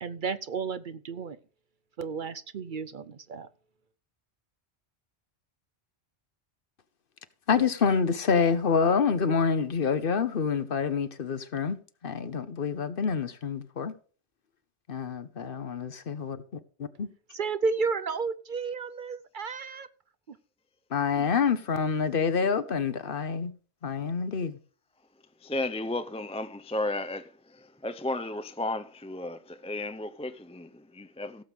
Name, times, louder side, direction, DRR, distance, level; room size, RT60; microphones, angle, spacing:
voice 1, 0.0-1.4 2.0-3.5 17.3-19.9 20.3-20.4, right 5 dB, 55° right, 0.7 m, -32 dB
voice 2, 7.5-13.9 14.9-16.4 16.8-17.1 20.9-23.5 23.8-24.6, left 6 dB, 55° left, 1.0 m, -27 dB
voice 3, 25.4-31.4, left 2 dB, 10° left, 0.4 m, -34 dB
16.5 x 7.6 x 3.6 m
omnidirectional pair, 1.1 m